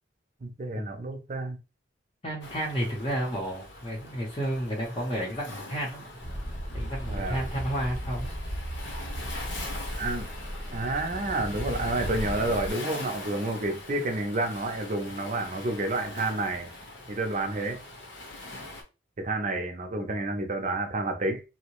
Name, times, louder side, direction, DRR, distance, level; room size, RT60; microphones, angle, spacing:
voice 1, 0.4-1.6 7.1-7.5 10.0-10.3 10.7-16.7 17.1-17.8 19.2-21.4, right 2 dB, 40° right, 0.5 m, -30 dB
voice 2, 2.2-6.1 6.7-8.3, equal, 30° left, 0.7 m, -31 dB
Waves surf, 2.4-18.8, left 2 dB, 75° left, 0.8 m, -42 dB
sound 1, 6.2-12.7, equal, 5° left, 1.0 m, -35 dB
2.8 x 2.0 x 2.9 m
head